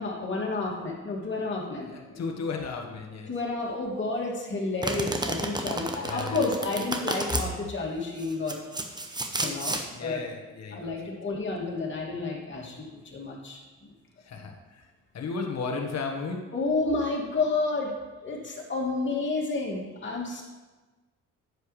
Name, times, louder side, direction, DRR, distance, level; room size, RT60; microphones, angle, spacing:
voice 1, 0.0-2.2 3.3-8.6 9.4-10.2 10.7-13.9 16.5-17.9 18.2-20.4, left 3 dB, 40° left, -3 dB, 2.7 m, -30 dB
voice 2, 1.9-3.3 5.7-6.6 7.5-7.6 9.9-11.4 14.2-14.9 15.1-16.4, left 4 dB, 60° left, 2 dB, 1.6 m, -35 dB
Domestic sounds home sounds, 4.8-7.4 8.2-9.8, right 2 dB, 15° right, 1.0 m, -31 dB
9.9 x 8.1 x 3.4 m, 1.3 s
cardioid pair, 90°, 30 cm